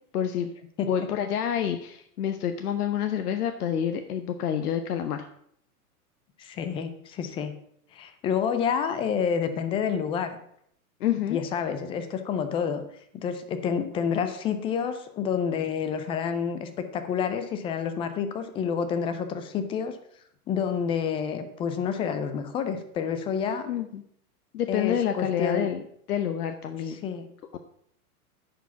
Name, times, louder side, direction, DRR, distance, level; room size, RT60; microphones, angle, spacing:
voice 1, 0.1-0.5 0.9-5.3 11.0-11.4 23.7-24.0 24.5-25.8 26.1-27.0 27.5-27.6, left 9 dB, 75° left, 8 dB, 0.9 m, -28 dB
voice 2, 6.4-7.5 7.9-10.4 11.3-12.8 13.1-20.0 20.5-23.7 24.7-25.7 26.9-27.3, left 7 dB, 15° left, 9 dB, 0.4 m, -29 dB
10.0 x 5.0 x 5.8 m, 0.69 s
hypercardioid pair, 120°, 45 cm